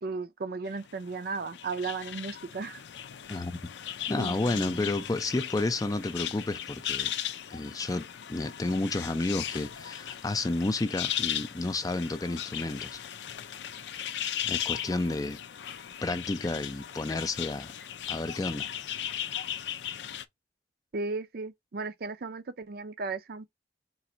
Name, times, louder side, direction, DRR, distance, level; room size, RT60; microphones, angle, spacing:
voice 1, 0.0-2.8 4.1-4.9 20.9-23.5, right 4 dB, 60° right, 0.5 m, -35 dB
sound 1, 0.7-20.3, left 10 dB, 80° left, 0.5 m, -37 dB
voice 2, 4.1-7.1 7.5-13.0 14.4-15.4 16.0-17.7 18.1-18.7, left 2 dB, 20° left, 0.4 m, -31 dB
3.9 x 2.5 x 4.3 m
head